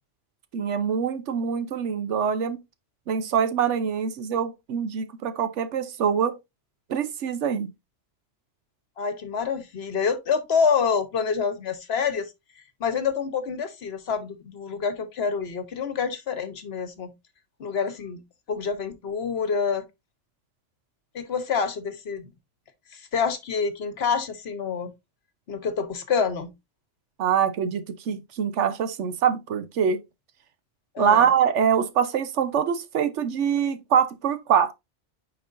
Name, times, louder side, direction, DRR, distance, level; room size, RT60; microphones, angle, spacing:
voice 1, 0.5-2.6 3.1-6.4 6.9-7.7 27.2-30.0 31.0-34.7, right 7 dB, 80° right, 1.1 m, -24 dB
voice 2, 9.0-12.3 12.8-17.1 17.6-18.2 18.5-19.8 21.1-22.3 22.9-24.9 25.5-26.5 30.9-31.3, left 6 dB, 60° left, 1.2 m, -27 dB
9.3 x 4.6 x 2.5 m
omnidirectional pair, 1.2 m